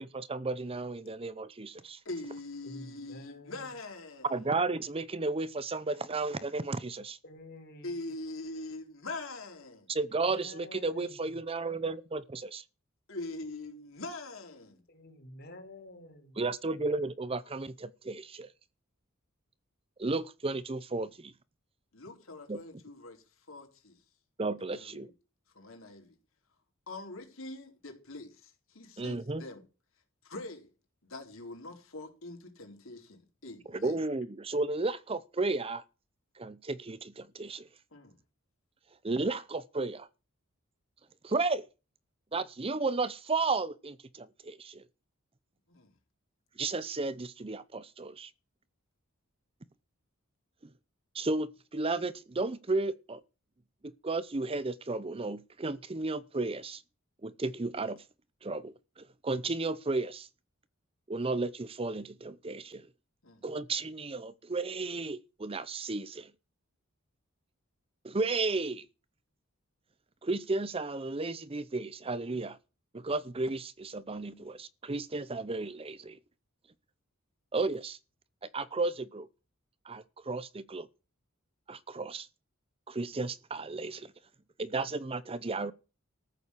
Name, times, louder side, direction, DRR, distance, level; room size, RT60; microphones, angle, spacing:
voice 1, 0.0-2.0 4.3-7.2 9.9-12.6 16.4-18.5 20.0-21.3 22.5-22.6 24.4-25.1 29.0-29.4 33.7-35.8 36.4-37.7 39.0-40.1 41.2-41.7 42.3-44.8 46.6-48.3 51.1-53.2 53.8-56.8 57.2-58.0 58.4-60.3 61.1-62.9 63.4-66.3 68.0-68.9 70.2-72.6 72.9-76.2 77.5-78.0 78.4-79.3 79.8-80.9 81.7-82.3 82.9-84.1 84.6-85.7, right 3 dB, 25° right, 0.7 m, -33 dB
voice 2, 2.0-4.4 7.8-9.9 13.1-14.8 21.9-24.0 24.7-25.1 25.5-26.2 26.9-29.6 30.2-30.7 31.0-34.0 37.9-38.2 45.7-45.9 63.2-63.4 74.3-74.5, left 2 dB, 70° left, 4.1 m, -43 dB
voice 3, 2.6-3.7 7.2-8.1 10.1-11.4 14.9-16.4, left 1 dB, 50° left, 4.4 m, -50 dB
14.5 x 7.0 x 8.5 m
head